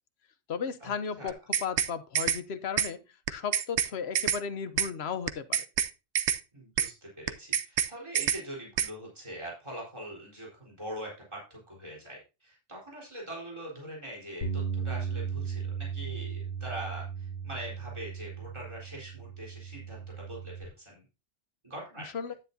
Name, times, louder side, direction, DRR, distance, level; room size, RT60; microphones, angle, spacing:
voice 1, 0.5-3.0 3.3-5.6 22.1-22.3, left 6 dB, 65° left, 11 dB, 1.1 m, -35 dB
sound 1, 1.3-1.9 2.1-2.4 2.8-2.9 3.3-4.4 4.8-4.9 5.3-5.9 6.1-6.4 6.8-6.9 7.3-7.9 8.1-8.4 8.8-8.9, right 9 dB, 80° right, 1.0 m, -27 dB
voice 2, 6.5-21.0 21.6-22.2, right 1 dB, 25° right, -4 dB, 4.3 m, -43 dB
Bass guitar, 14.4-20.7, right 6 dB, 90° left, 1.5 m, -36 dB
10.5 x 9.4 x 2.7 m, 0.28 s
omnidirectional pair, 1.2 m